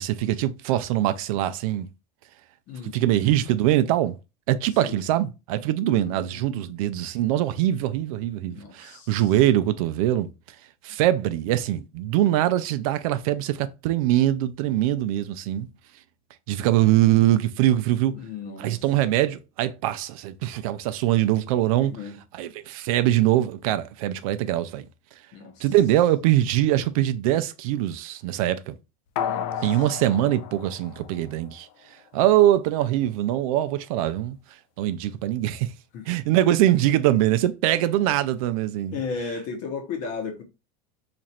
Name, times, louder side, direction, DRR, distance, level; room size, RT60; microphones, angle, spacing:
voice 1, 0.0-1.9 2.9-4.2 4.5-10.3 10.8-15.7 16.5-18.1 18.6-21.9 22.3-24.8 25.6-28.8 29.6-31.7 32.1-34.4 34.8-35.7 36.1-39.0, right 13 dB, 65° right, 0.4 m, -23 dB
voice 2, 2.7-3.0 4.8-4.9 5.9-6.6 8.5-9.3 10.9-11.0 18.1-18.8 21.8-22.2 25.3-25.6 29.2-29.7 35.9-36.1 38.9-40.4, left 5 dB, 40° left, 0.8 m, -35 dB
sound 1, 29.2-31.7 32.1-32.2, left 8 dB, 60° left, 0.5 m, -32 dB
3.0 x 2.5 x 4.1 m
supercardioid pair, 175°, 20 cm